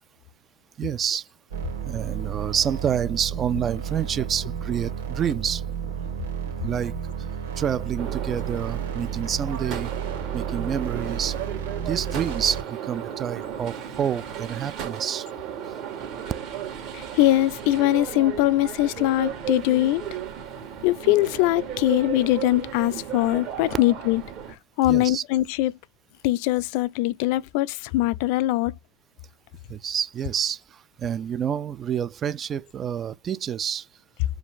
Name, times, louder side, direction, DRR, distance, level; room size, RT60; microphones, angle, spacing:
voice 1, 0.8-1.3 1.8-5.6 6.6-7.0 7.6-9.9 10.3-11.4 11.9-15.3 15.6-15.7 24.9-25.2 29.7-33.9, right 8 dB, 35° right, 0.4 m, -28 dB
sound 1, 1.5-12.6, right 7 dB, 90° right, 1.8 m, -32 dB
sound 2, 8.0-24.5, right 9 dB, 50° right, 1.9 m, -35 dB
voice 2, 16.9-20.0 20.8-24.2 24.8-25.7 26.2-28.7, left 16 dB, 65° left, 0.4 m, -22 dB
4.9 x 2.5 x 3.5 m
hypercardioid pair, 105°, 0 cm